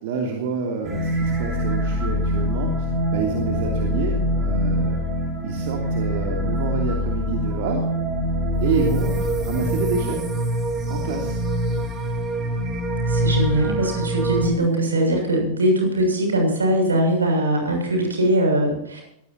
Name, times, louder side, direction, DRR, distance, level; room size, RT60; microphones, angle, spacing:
voice 1, 0.0-5.0 5.4-7.9 8.6-10.2 10.9-11.4, right 5 dB, 50° right, 1 dB, 2.9 m, -28 dB
sound 1, 0.8-14.5, equal, 25° right, 4.7 m, -24 dB
voice 2, 13.1-19.0, right 1 dB, 75° right, 2 dB, 7.0 m, -21 dB
22.5 x 17.0 x 2.9 m, 0.77 s
figure-of-eight pair, 90°, 0 cm